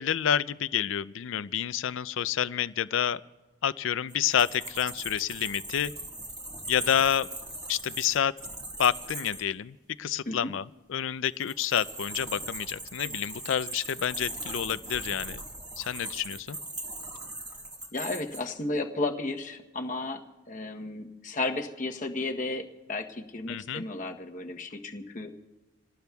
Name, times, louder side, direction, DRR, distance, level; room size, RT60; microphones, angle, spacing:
voice 1, 0.0-3.2 3.6-5.9 6.7-7.3 7.7-8.3 8.8-15.4 15.8-16.6 23.5-23.8, left 9 dB, 65° left, 16 dB, 0.4 m, -29 dB
sound 1, 4.1-9.4 11.2-18.4, right 2 dB, 20° right, 1.6 m, -40 dB
voice 2, 17.9-25.3, left 2 dB, 40° left, 4 dB, 0.9 m, -33 dB
27.5 x 18.5 x 2.3 m, 1.1 s
head